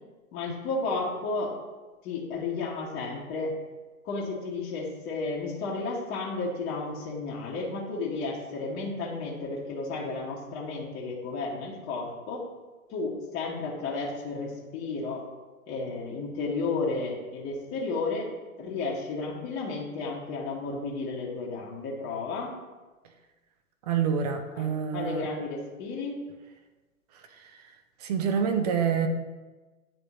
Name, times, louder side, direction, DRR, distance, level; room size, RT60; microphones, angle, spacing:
voice 1, 0.3-1.6 2.0-3.6 4.0-12.5 12.9-15.3 15.7-18.3 18.6-22.5 24.5-24.7 24.9-26.2, left 3 dB, 25° left, -5 dB, 0.9 m, -32 dB
voice 2, 23.9-25.3 27.4-27.5 28.0-29.1, right 7 dB, 30° right, 7 dB, 0.5 m, -27 dB
9.8 x 3.5 x 2.9 m, 1.2 s
figure-of-eight pair, 120°, 44 cm